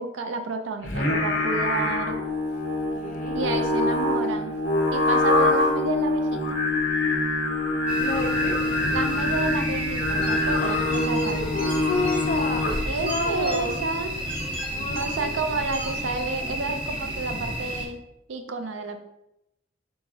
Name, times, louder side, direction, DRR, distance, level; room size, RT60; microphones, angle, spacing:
voice 1, 0.0-2.2 3.3-4.5 4.9-6.6 8.9-11.4 12.9-14.2 14.9-18.0 18.3-19.0, right 3 dB, 80° right, 6 dB, 0.5 m, -30 dB
Singing, 0.8-13.0, left 2 dB, 60° left, 0.9 m, -25 dB
voice 2, 3.0-3.4 8.0-8.6 10.4-12.7 13.0-13.8 14.7-15.2, left 2 dB, 45° left, 4 dB, 0.5 m, -30 dB
sound 1, 7.9-17.9, right 1 dB, 5° right, 0.9 m, -32 dB
sound 2, 10.2-16.2, right 1 dB, 30° right, 1.2 m, -41 dB
4.6 x 3.9 x 2.4 m, 0.84 s
head